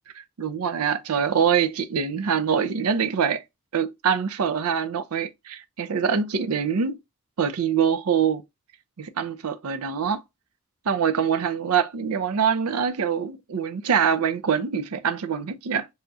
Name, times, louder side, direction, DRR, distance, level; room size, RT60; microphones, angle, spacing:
voice 1, 0.4-3.4 3.7-7.0 7.4-8.4 9.0-10.2 10.9-15.9, right 7 dB, 75° right, 0.5 m, -24 dB
4.2 x 2.4 x 2.5 m
head